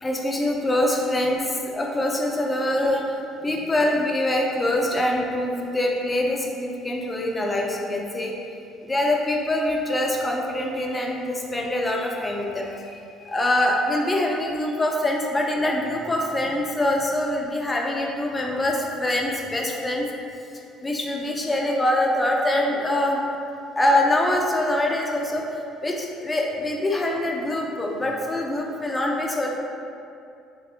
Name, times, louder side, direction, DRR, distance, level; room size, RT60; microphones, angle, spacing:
voice 1, 0.0-3.2 3.4-8.3 8.8-20.1 20.8-23.2 23.8-29.6, left 1 dB, 15° left, 0 dB, 0.4 m, -24 dB
3.5 x 3.3 x 2.7 m, 2.5 s
cardioid pair, 140°, 0 cm